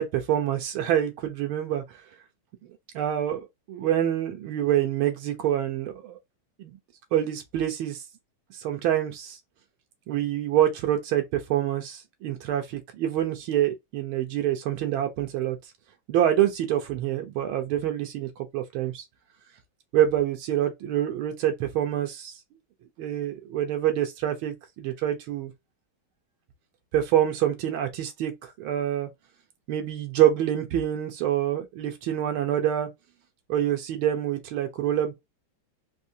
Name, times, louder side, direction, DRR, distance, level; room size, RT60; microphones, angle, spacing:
voice 1, 0.0-1.8 3.0-6.2 6.6-6.7 7.1-8.0 8.6-9.4 10.1-15.6 16.1-19.0 19.9-22.3 23.0-25.5 26.9-29.1 29.7-32.9 33.5-35.1, right 11 dB, 90° right, 1.6 m, -26 dB
4.1 x 2.7 x 2.7 m
omnidirectional pair, 2.2 m